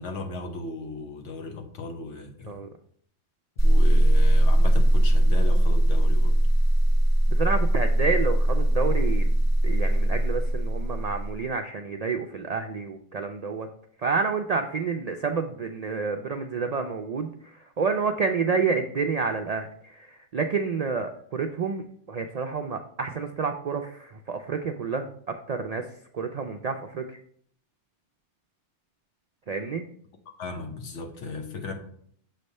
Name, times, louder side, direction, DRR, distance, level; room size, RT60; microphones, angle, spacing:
voice 1, 0.0-2.6 3.6-6.4 30.4-31.7, left 3 dB, 85° left, 4 dB, 1.2 m, -36 dB
sound 1, 3.6-11.4, right 1 dB, 15° left, 0.9 m, -20 dB
voice 2, 7.3-13.7 14.0-27.2 29.5-29.9, right 5 dB, 70° right, 5 dB, 0.3 m, -29 dB
6.4 x 3.3 x 5.3 m, 0.63 s
omnidirectional pair, 1.2 m